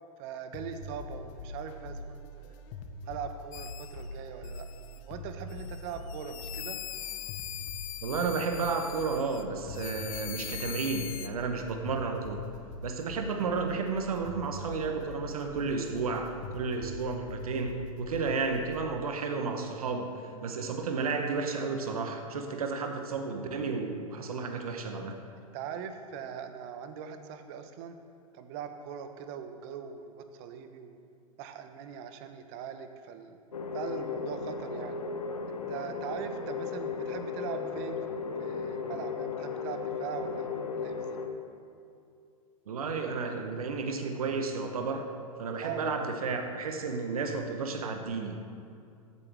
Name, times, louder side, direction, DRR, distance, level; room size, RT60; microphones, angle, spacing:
voice 1, 0.2-2.6 3.1-4.7 5.1-6.8 25.5-28.0 28.3-31.0 31.4-33.4 33.7-35.0 35.7-41.2 45.6-45.8, right 7 dB, 50° right, 8 dB, 1.0 m, -41 dB
sound 1, 0.5-18.8, left 1 dB, 50° left, 1.0 m, -43 dB
sound 2, 3.5-4.0 4.4-5.0 5.5-9.4 9.7-11.3, left 13 dB, 65° left, 0.6 m, -42 dB
voice 2, 8.0-12.4 12.8-20.1 20.4-25.2 42.7-45.1 45.4-48.5, right 4 dB, 80° right, 5 dB, 1.1 m, -32 dB
sound 3, 33.5-41.3, left 5 dB, 85° left, 1.0 m, -35 dB
14.0 x 8.4 x 3.6 m, 2.5 s
hypercardioid pair, 100°, 19 cm